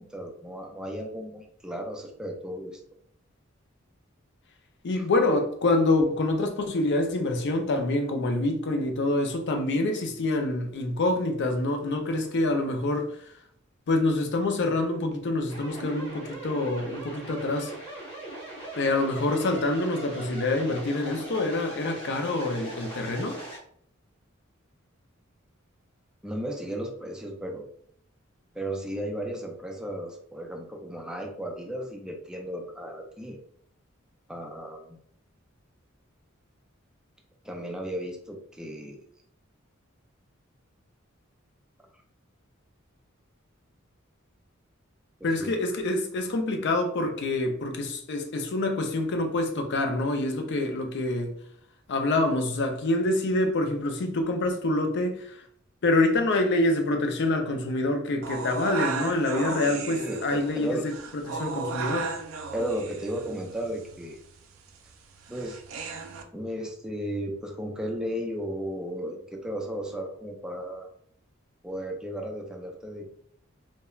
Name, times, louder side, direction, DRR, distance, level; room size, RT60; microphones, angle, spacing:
voice 1, 0.0-2.8 4.9-5.0 26.2-27.7 28.5-33.4 34.3-35.0 37.4-39.0 45.2-45.7 59.9-60.8 62.5-64.2 65.3-65.6 66.3-70.9 71.6-73.1, right 1 dB, 5° right, 0.4 m, -35 dB
voice 2, 4.8-13.4 13.9-17.7 18.7-23.4 45.2-51.4 51.9-55.4 55.8-62.1, left 2 dB, 60° left, 0.4 m, -26 dB
sound 1, 15.5-23.6, right 2 dB, 25° left, 1.0 m, -40 dB
sound 2, 58.2-66.2, right 4 dB, 70° right, 0.4 m, -36 dB
3.1 x 2.1 x 2.3 m
head